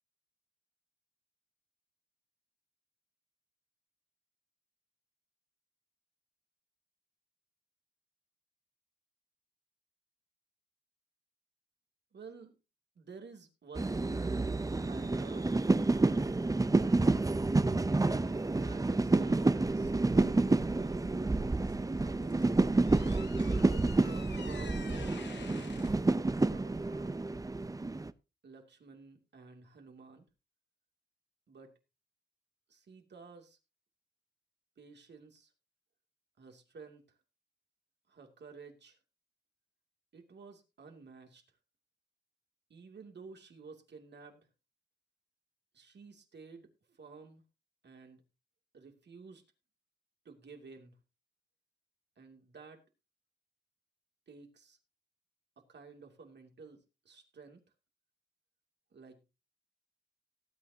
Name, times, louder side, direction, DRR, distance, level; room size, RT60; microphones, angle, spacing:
voice 1, 12.1-12.5 12.9-14.4 14.9-15.6 15.9-16.3 16.7-17.3 18.2-21.1 21.6-22.2 23.5-24.9 26.4-27.2 28.4-30.3 31.5-31.7 32.7-33.6 34.8-35.5 36.4-37.2 38.1-39.0 40.1-41.4 42.7-44.5 45.7-47.4 47.8-48.2 48.7-49.4 50.2-51.0 52.2-52.8 54.3-54.8 55.6-57.6 58.9-59.2, right 4 dB, 75° right, 4 dB, 2.7 m, -52 dB
sound 1, 13.8-28.1, right 2 dB, 20° right, 0.6 m, -29 dB
sound 2, 22.0-27.2, left 6 dB, 90° left, 1.4 m, -51 dB
18.5 x 9.1 x 2.8 m, 0.27 s
wide cardioid pair, 85°, 18 cm